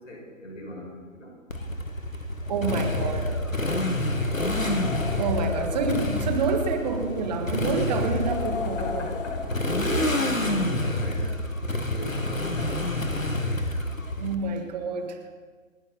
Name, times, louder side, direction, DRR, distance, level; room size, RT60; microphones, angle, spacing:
voice 1, 0.0-1.4 3.5-4.2 8.6-13.1, equal, 70° left, -1 dB, 6.0 m, -40 dB
Motorcycle, 1.5-14.4, left 1 dB, 85° left, 1.9 m, -28 dB
sound 1, 2.5-10.0, left 5 dB, 45° left, 1.2 m, -36 dB
voice 2, 2.5-3.3 5.2-9.1 14.2-15.2, right 4 dB, 35° right, 5 dB, 1.8 m, -28 dB
29.5 x 10.0 x 4.2 m, 1.5 s
figure-of-eight pair, 130°, 39 cm